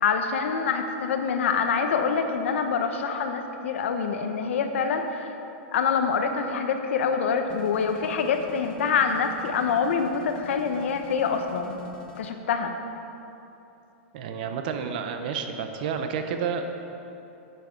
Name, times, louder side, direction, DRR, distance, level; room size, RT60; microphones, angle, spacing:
voice 1, 0.0-5.3 5.7-11.7 12.2-12.7, left 6 dB, 65° left, 6 dB, 0.8 m, -25 dB
sound 1, 7.5-12.3, left 8 dB, 10° left, 0.4 m, -47 dB
voice 2, 14.1-16.6, right 6 dB, 40° right, 6 dB, 0.7 m, -30 dB
9.5 x 7.4 x 4.6 m, 2.9 s
supercardioid pair, 175°, 7 cm